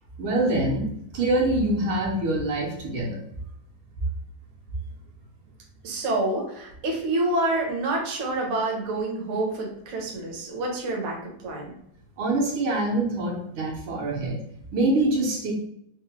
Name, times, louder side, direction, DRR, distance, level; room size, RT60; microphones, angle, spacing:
voice 1, 0.2-0.9 1.1-3.2 12.2-14.4 14.7-15.5, right 2 dB, 80° right, -1 dB, 1.7 m, -24 dB
voice 2, 5.8-11.2 11.4-11.6, right 2 dB, 55° right, -1 dB, 0.8 m, -27 dB
4.3 x 2.1 x 2.8 m, 0.73 s
omnidirectional pair, 2.3 m